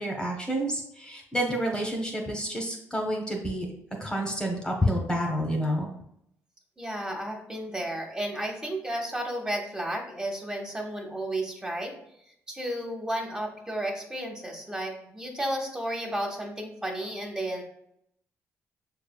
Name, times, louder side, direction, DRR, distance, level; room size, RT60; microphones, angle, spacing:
voice 1, 0.0-3.7 4.0-5.9, equal, 15° left, 0 dB, 0.9 m, -29 dB
voice 2, 6.8-11.9 12.5-17.6, right 1 dB, 10° right, 0 dB, 1.0 m, -33 dB
6.0 x 3.3 x 2.2 m, 0.74 s
cardioid pair, 75°, 6 cm